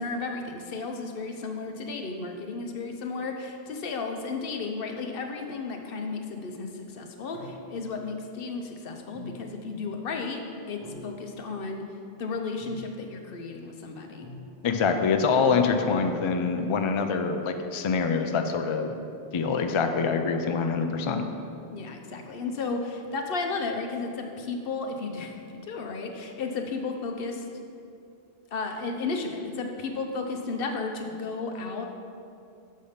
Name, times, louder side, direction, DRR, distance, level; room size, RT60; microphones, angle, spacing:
voice 1, 0.0-11.8 12.2-14.3 21.7-27.5 28.5-31.8, left 4 dB, 70° left, 4 dB, 0.9 m, -33 dB
sound 1, 7.3-8.0 9.1-9.8 10.8-11.4 12.6-13.2 14.2-14.5, equal, 20° right, 1.5 m, -45 dB
voice 2, 14.6-18.9 19.3-21.2, left 5 dB, 50° left, 6 dB, 0.3 m, -25 dB
6.5 x 5.6 x 5.0 m, 2.6 s
omnidirectional pair, 1.0 m